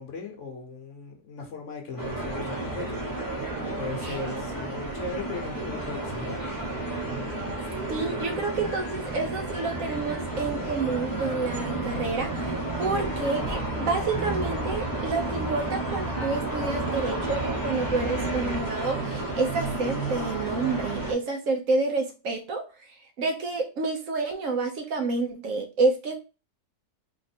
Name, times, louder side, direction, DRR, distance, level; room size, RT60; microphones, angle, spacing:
voice 1, 0.0-3.1 3.8-6.5, left 3 dB, 55° left, 1.1 m, -37 dB
sound 1, 2.0-21.1, right 2 dB, 15° left, 0.8 m, -31 dB
voice 2, 7.9-12.5 12.8-22.6 23.2-26.1, right 3 dB, 65° right, 1.0 m, -29 dB
3.5 x 2.5 x 4.1 m
omnidirectional pair, 1.6 m